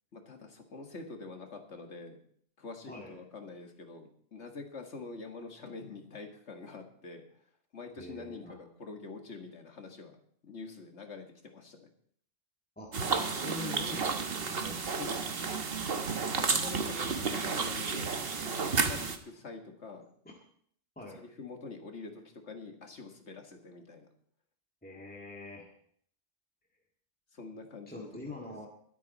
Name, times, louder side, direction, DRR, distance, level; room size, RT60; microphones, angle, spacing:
voice 1, 0.1-2.2 2.6-7.4 7.7-11.9 14.9-15.3 16.2-18.2 18.5-20.1 21.1-24.1 27.3-28.3, left 3 dB, 80° left, 4 dB, 2.0 m, -46 dB
voice 2, 8.0-8.6 12.8-15.1 21.0-21.2 24.8-25.7 27.9-28.7, left 2 dB, 10° left, -2 dB, 1.9 m, -44 dB
sound 1, 12.9-19.2, right 5 dB, 60° right, 1.3 m, -32 dB
22.5 x 8.4 x 4.1 m, 0.62 s
omnidirectional pair, 1.2 m